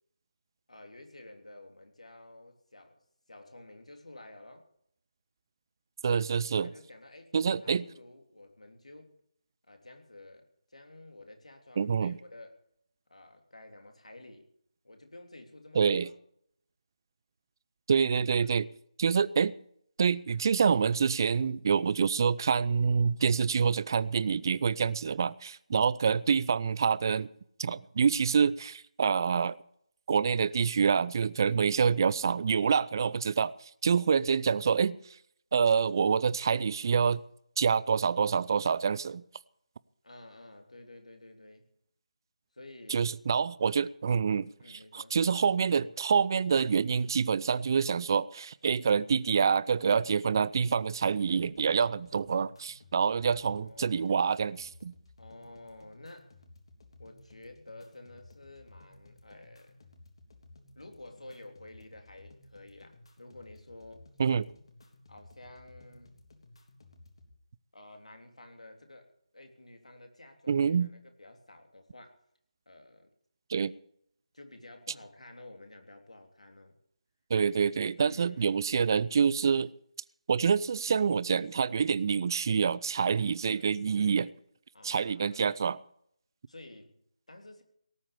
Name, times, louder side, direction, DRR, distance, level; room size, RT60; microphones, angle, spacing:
voice 1, 0.7-3.0 3.3-4.7 6.6-7.3 7.6-9.2 9.7-12.6 13.1-14.5 14.8-16.1 18.4-18.5 24.7-24.9 31.4-31.6 40.0-41.7 42.5-43.1 44.6-45.2 53.5-54.3 55.2-56.3 57.0-59.8 60.7-64.1 65.1-66.2 67.7-72.2 72.6-73.1 74.3-76.7 78.0-78.5 83.5-83.7 84.7-85.6 86.5-87.6, left 2 dB, 70° left, 3.3 m, -51 dB
voice 2, 6.0-6.7 7.3-7.9 11.8-12.1 15.7-16.1 17.9-18.6 19.0-19.5 20.0-27.3 27.6-29.6 30.1-35.0 35.5-37.2 37.6-39.2 42.9-54.9 64.2-64.5 70.5-70.9 73.5-73.7 77.3-79.7 80.3-84.3 84.8-85.8, right 6 dB, 35° right, 0.5 m, -27 dB
sound 1, 51.3-67.3, left 2 dB, 50° left, 3.2 m, -57 dB
18.0 x 8.8 x 8.5 m
figure-of-eight pair, 155°, 4 cm